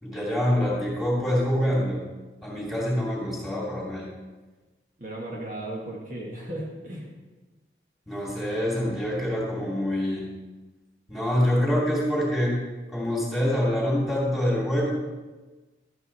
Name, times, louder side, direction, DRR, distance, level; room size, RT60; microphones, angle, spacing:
voice 1, 0.0-2.0 2.4-4.1 8.1-10.3 11.1-12.6 12.9-14.9, equal, ahead, -5 dB, 2.8 m, -25 dB
voice 2, 5.0-7.1, right 1 dB, 45° right, -3 dB, 1.6 m, -35 dB
12.5 x 9.0 x 4.2 m, 1.2 s
head